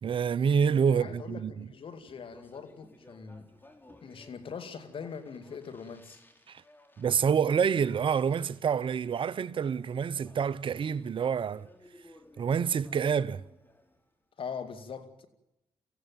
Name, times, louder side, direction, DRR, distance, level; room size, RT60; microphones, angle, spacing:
voice 1, 0.0-1.7 6.5-6.6 7.0-11.7 12.4-13.4, right 7 dB, 60° right, 0.7 m, -27 dB
voice 2, 0.9-3.5 4.0-6.2 14.4-15.3, left 6 dB, 60° left, 2.3 m, -42 dB
Speech, 1.8-14.1, left 1 dB, 20° left, 4.7 m, -59 dB
24.5 x 16.0 x 9.2 m
supercardioid pair, 55°, 10 cm